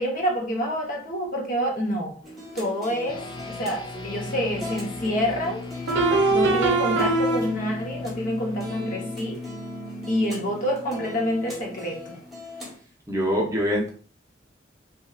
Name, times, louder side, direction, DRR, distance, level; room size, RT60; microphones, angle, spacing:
voice 1, 0.0-2.1 2.5-3.2 3.5-5.6 6.3-9.4 10.1-12.2, equal, 50° left, 0 dB, 0.8 m, -27 dB
sound 1, 2.2-12.8, left 1 dB, ahead, 1.0 m, -40 dB
sound 2, 3.1-12.7, left 3 dB, 25° left, 0.3 m, -38 dB
sound 3, 4.6-4.7 5.9-7.8, right 2 dB, 85° right, 0.5 m, -22 dB
voice 2, 13.1-13.9, equal, 20° right, -2 dB, 0.6 m, -24 dB
2.7 x 2.7 x 2.3 m, 0.42 s
head